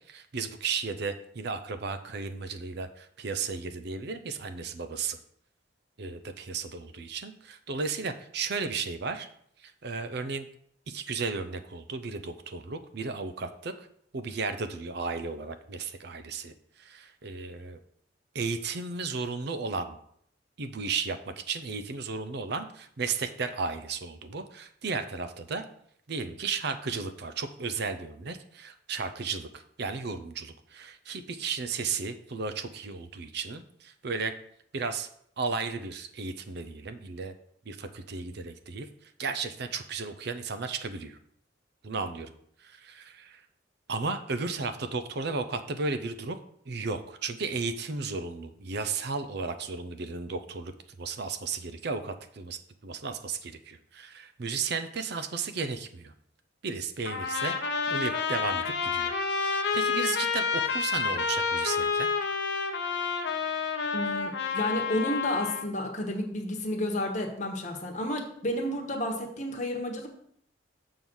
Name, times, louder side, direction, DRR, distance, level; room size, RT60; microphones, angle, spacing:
voice 1, 0.1-5.2 6.0-9.3 9.6-10.5 10.9-13.9 14.1-17.8 18.3-20.0 20.6-25.6 26.1-34.3 34.7-35.1 35.4-37.3 37.7-41.2 41.8-42.3 42.6-43.4 43.9-46.4 46.7-56.1 56.6-57.6 57.9-59.1 59.7-62.1, right 4 dB, 55° right, 9 dB, 0.6 m, -34 dB
Trumpet, 57.0-65.7, left 5 dB, 60° left, 0.9 m, -29 dB
voice 2, 63.9-70.1, left 1 dB, 40° left, 3 dB, 1.2 m, -31 dB
7.0 x 3.8 x 6.2 m, 0.67 s
head